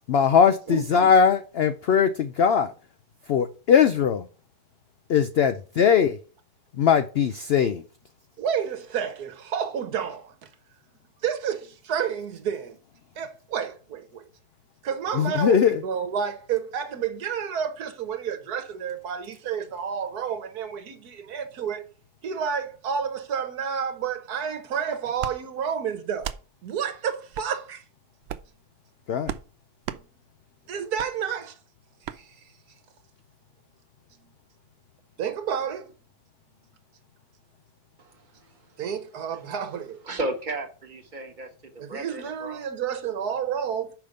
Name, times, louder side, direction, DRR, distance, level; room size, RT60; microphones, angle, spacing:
voice 1, 0.1-2.7 3.3-4.2 5.1-6.1 6.8-7.8 15.2-15.8 29.1-29.3, left 7 dB, 85° left, 0.5 m, -20 dB
voice 2, 8.4-10.5 11.2-12.8 13.2-14.3 14.8-21.8 22.2-26.3 26.6-27.8 30.0-30.1 30.7-31.6 32.1-32.4 34.2-34.3 35.2-35.9 38.8-40.0 41.8-44.0, right 7 dB, 75° right, 1.5 m, -30 dB
sound 1, 25.2-25.4 26.2-26.4 27.3-27.5 28.2-28.5 29.2-29.5 29.8-30.0 31.0-31.1 32.0-32.2, right 10 dB, 90° right, 0.5 m, -34 dB
voice 3, 40.1-41.5 41.9-42.7, right 2 dB, 30° right, 1.2 m, -33 dB
5.8 x 5.1 x 6.6 m
omnidirectional pair, 1.7 m